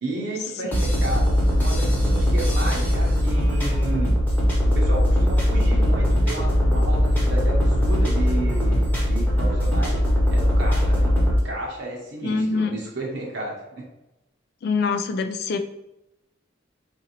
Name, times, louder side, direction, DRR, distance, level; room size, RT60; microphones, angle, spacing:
voice 1, 0.0-4.1 4.7-10.0 10.3-11.2 11.4-13.9, right 2 dB, 60° right, -2 dB, 0.8 m, -32 dB
sound 1, 0.7-11.4, equal, 10° left, 1.0 m, -20 dB
voice 2, 12.2-12.8 14.6-15.6, left 4 dB, 55° left, 8 dB, 0.3 m, -24 dB
4.0 x 2.5 x 2.9 m, 0.94 s
head